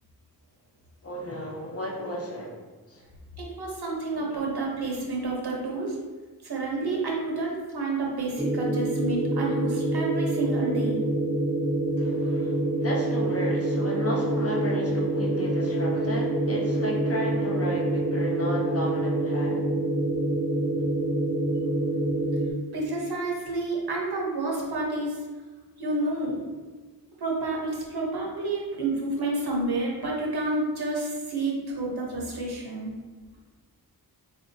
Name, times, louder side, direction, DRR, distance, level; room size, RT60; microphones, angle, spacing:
voice 1, 1.0-3.0 4.1-4.4 12.0-19.7, equal, 40° left, -2 dB, 0.8 m, -33 dB
voice 2, 3.4-6.0 6.4-11.0 22.7-25.2 25.8-26.4 27.2-32.9, right 2 dB, 80° right, -2 dB, 0.9 m, -29 dB
sound 1, 8.4-22.5, right 1 dB, 10° right, 0.5 m, -26 dB
4.3 x 2.7 x 2.7 m, 1.3 s
wide cardioid pair, 70°, 38 cm